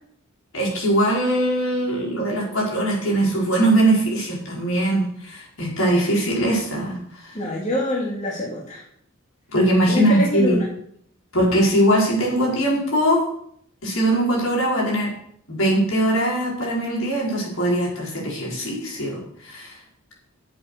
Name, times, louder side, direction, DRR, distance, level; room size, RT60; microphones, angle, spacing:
voice 1, 0.5-7.0 7.2-7.4 9.5-10.6 11.3-13.3 13.8-15.1 15.5-19.7, right 1 dB, 75° left, -3 dB, 5.2 m, -21 dB
voice 2, 7.3-8.8 9.9-10.7, left 1 dB, 35° left, -3 dB, 2.5 m, -25 dB
11.0 x 8.0 x 6.6 m, 0.67 s
head